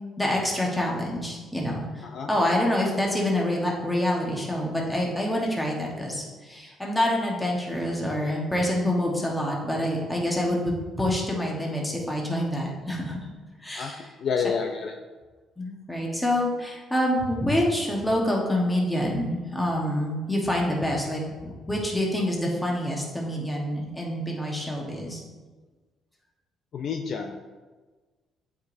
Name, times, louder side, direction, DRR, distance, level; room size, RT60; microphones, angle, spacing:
voice 1, 0.2-13.3 13.6-14.1 14.4-14.5 15.6-25.2, left 1 dB, 5° left, -2 dB, 1.2 m, -27 dB
voice 2, 14.2-14.9 26.7-27.5, left 6 dB, 40° left, 3 dB, 0.4 m, -28 dB
11.5 x 5.0 x 2.6 m, 1.3 s
cardioid pair, 175°, 0 cm